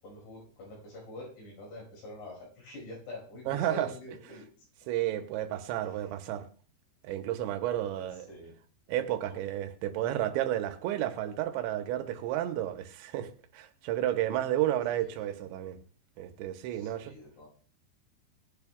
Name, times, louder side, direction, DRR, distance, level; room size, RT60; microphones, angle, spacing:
voice 1, 0.0-4.5 5.8-6.2 7.7-8.5 9.3-9.4 15.2-15.3 16.7-17.5, left 1 dB, 75° left, 7.2 m, -46 dB
voice 2, 3.5-3.9 4.9-6.5 7.0-8.3 8.9-15.8 16.2-17.1, right 12 dB, 85° right, 3.1 m, -32 dB
19.0 x 10.5 x 2.3 m
omnidirectional pair, 5.2 m